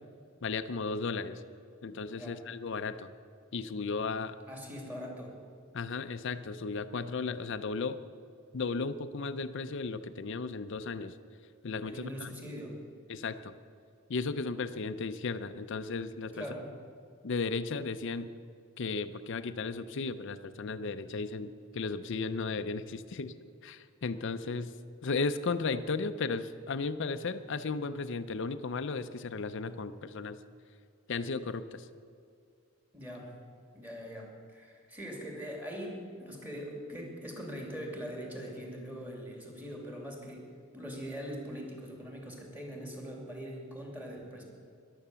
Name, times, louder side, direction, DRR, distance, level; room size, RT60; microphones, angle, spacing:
voice 1, 0.4-1.4 1.8-3.1 3.5-4.4 5.7-8.0 8.5-11.2 11.6-12.3 13.1-13.5 14.1-16.5 17.2-18.3 18.8-23.3 23.6-24.7 25.0-30.4 31.1-31.9, left 4 dB, 60° left, 10 dB, 0.5 m, -35 dB
voice 2, 4.5-5.4 11.9-12.8 16.3-16.7 32.9-33.3 33.7-40.4 40.7-44.4, equal, 10° right, 0 dB, 2.6 m, -42 dB
14.0 x 11.0 x 6.9 m, 2.3 s
head